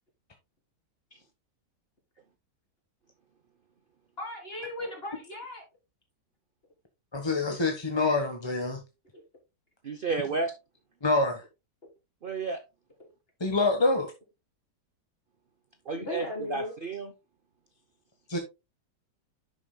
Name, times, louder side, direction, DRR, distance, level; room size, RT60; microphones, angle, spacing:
voice 1, 4.2-5.6 9.1-9.2 16.0-16.7, left 1 dB, 35° left, 3.7 m, -37 dB
voice 2, 7.1-8.8 11.0-11.4 13.4-14.1 18.3-18.4, left 3 dB, 20° left, 1.0 m, -26 dB
voice 3, 9.8-10.5 12.2-12.6 15.9-17.1, right 4 dB, 45° right, 0.7 m, -32 dB
10.5 x 7.3 x 2.2 m
omnidirectional pair, 1.8 m